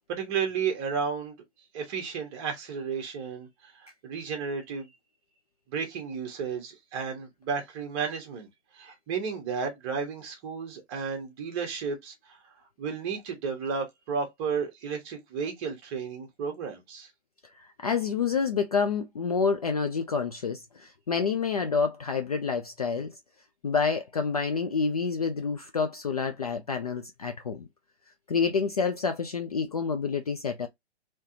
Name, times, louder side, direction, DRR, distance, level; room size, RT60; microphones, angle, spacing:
voice 1, 0.1-1.3 1.7-4.9 5.7-8.5 8.7-12.4 12.8-17.1, right 6 dB, 25° right, 1.1 m, -33 dB
voice 2, 17.6-23.1 23.6-27.7 28.3-30.7, left 5 dB, 35° left, 0.4 m, -28 dB
3.2 x 3.0 x 2.7 m
figure-of-eight pair, 125°, 34 cm